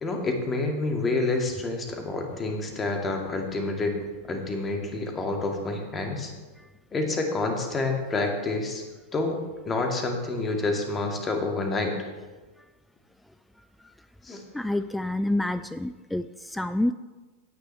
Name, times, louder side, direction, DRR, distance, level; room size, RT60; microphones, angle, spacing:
voice 1, 0.0-4.0 4.3-6.3 6.9-8.8 9.1-9.4 9.7-12.1 14.2-14.4, left 3 dB, 20° left, 3 dB, 2.1 m, -28 dB
voice 2, 14.5-16.9, left 1 dB, 5° left, 13 dB, 0.3 m, -28 dB
16.5 x 9.5 x 3.4 m, 1.2 s
figure-of-eight pair, 90°, 0 cm